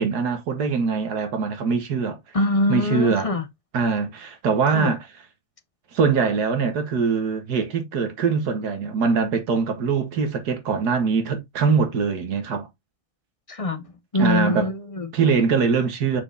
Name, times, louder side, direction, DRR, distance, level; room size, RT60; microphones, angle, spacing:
voice 1, 0.0-2.2 2.7-3.3 3.7-5.1 5.9-12.7 14.2-14.7 15.1-16.2, right 5 dB, 85° right, 1.8 m, -22 dB
voice 2, 2.3-3.4 4.7-4.9 13.5-13.8 14.1-15.1, left 2 dB, 35° left, 0.6 m, -23 dB
7.1 x 5.8 x 2.5 m
omnidirectional pair, 1.7 m